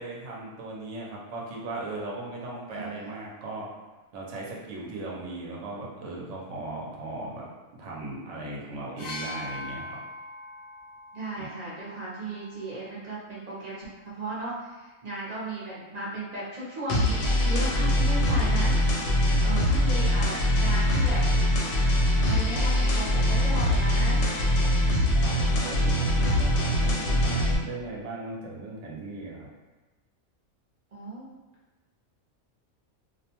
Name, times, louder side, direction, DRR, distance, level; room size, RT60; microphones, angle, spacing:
voice 1, 0.0-3.7 4.1-7.5 7.8-10.0 11.4-11.5 19.3-19.6 24.5-29.5, right 2 dB, 70° right, -3 dB, 0.9 m, -38 dB
voice 2, 2.7-3.1 11.1-18.8 19.1-21.2 22.2-24.2 30.9-31.4, right 2 dB, 45° right, -7 dB, 0.5 m, -36 dB
sound 1, 9.0-12.8 13.8-14.0, left 2 dB, 60° left, 0.7 m, -41 dB
sound 2, 16.9-27.6, left 1 dB, 80° left, 1.0 m, -23 dB
2.5 x 2.2 x 2.8 m, 1.2 s
omnidirectional pair, 1.4 m